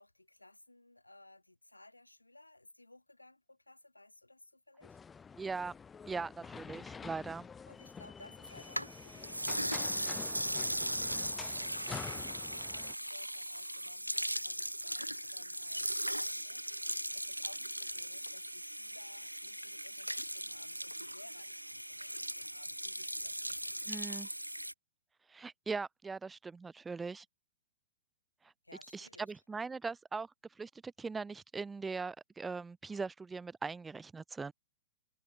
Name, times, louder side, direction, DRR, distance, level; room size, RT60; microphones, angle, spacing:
voice 1, 0.0-5.0 7.7-24.2 28.6-29.3, left 2 dB, 85° left, 2.8 m, -58 dB
sound 1, 4.8-12.9, left 6 dB, 15° left, 1.5 m, -48 dB
voice 2, 5.4-5.7 6.1-7.5 23.9-24.3 25.3-27.3 28.9-30.3 30.6-34.5, right 4 dB, 10° right, 0.4 m, -40 dB
sound 2, 8.5-24.7, right 1 dB, 90° right, 0.9 m, -38 dB
figure-of-eight pair, 105°, 0 cm